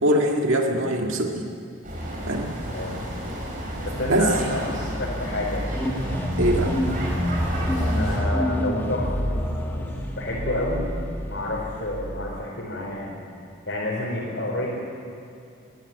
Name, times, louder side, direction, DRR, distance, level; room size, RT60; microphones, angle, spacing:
voice 1, 0.0-1.5 2.3-2.5 4.1-4.3 6.4-6.8, right 1 dB, 85° right, 2 dB, 1.9 m, -22 dB
sound 1, 1.8-8.2, equal, 40° right, 4.7 m, -31 dB
voice 2, 3.8-5.7 7.8-10.9 11.2-13.2 13.7-14.7, left 1 dB, 65° left, -6 dB, 4.6 m, -30 dB
sound 2, 5.7-12.4, equal, 10° left, 1.6 m, -27 dB
22.0 x 15.0 x 9.3 m, 2.6 s
head